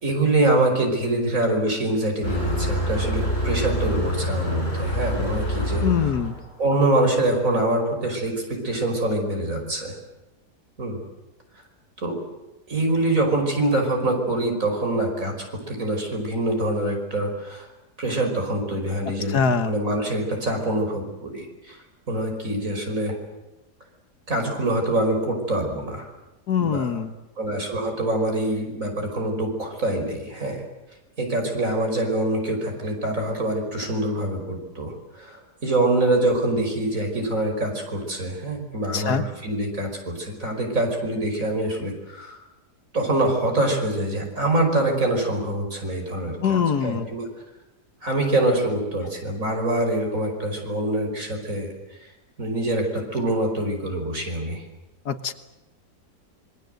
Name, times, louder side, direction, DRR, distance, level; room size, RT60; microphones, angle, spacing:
voice 1, 0.0-6.2 6.6-10.0 10.8-11.0 12.0-12.2 12.7-15.3 15.7-17.7 18.0-23.2 24.3-26.1 26.6-26.9 27.4-30.6 31.2-42.4 42.9-47.3 48.0-52.1 52.4-54.6, right 1 dB, 50° right, 3 dB, 5.7 m, -25 dB
Motor vehicle (road), 2.2-7.4, equal, 35° left, 6.6 m, -26 dB
voice 2, 5.8-6.4 19.3-19.7 26.5-27.1 38.9-39.2 46.4-47.1 55.1-55.3, left 7 dB, 70° left, 10 dB, 1.9 m, -23 dB
26.5 x 22.5 x 7.9 m, 0.99 s
omnidirectional pair, 1.8 m